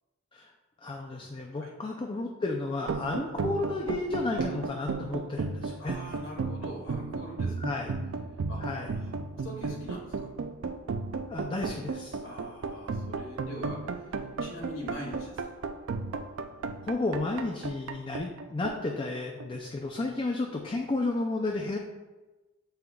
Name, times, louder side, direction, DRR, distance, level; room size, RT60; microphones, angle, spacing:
voice 1, 0.8-6.0 7.6-7.9 8.6-9.0 11.3-12.2 16.8-21.8, left 2 dB, 25° left, 2 dB, 0.4 m, -32 dB
sound 1, 2.8-19.7, right 4 dB, 70° right, 0.4 m, -35 dB
voice 2, 5.8-7.6 8.5-8.6 9.0-10.3 12.2-15.6, equal, 70° left, -3 dB, 2.0 m, -43 dB
7.5 x 5.5 x 2.3 m, 1.2 s
head